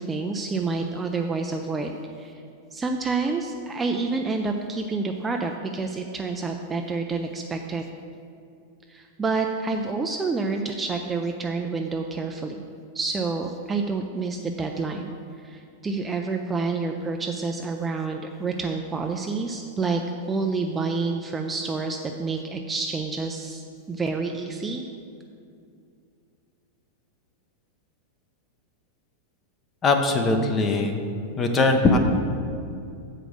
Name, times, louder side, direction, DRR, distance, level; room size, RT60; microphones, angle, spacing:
voice 1, 0.0-2.4 2.7-7.9 8.9-12.6 12.9-15.1 15.4-20.0 20.3-24.8, right 4 dB, 10° right, 3 dB, 0.3 m, -28 dB
voice 2, 29.8-31.0 31.4-32.0, left 3 dB, 20° left, 5 dB, 0.7 m, -21 dB
7.4 x 5.1 x 6.4 m, 2.4 s
supercardioid pair, 160°, 0 cm